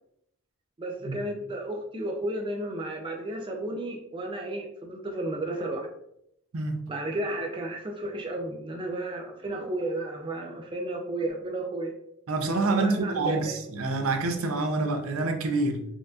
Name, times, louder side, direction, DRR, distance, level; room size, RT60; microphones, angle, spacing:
voice 1, 0.8-5.9 6.9-11.9 12.7-13.6, right 1 dB, 25° right, 0.3 m, -33 dB
voice 2, 6.5-6.9 12.3-15.9, right 3 dB, 80° right, 0.5 m, -27 dB
4.3 x 2.5 x 2.4 m
head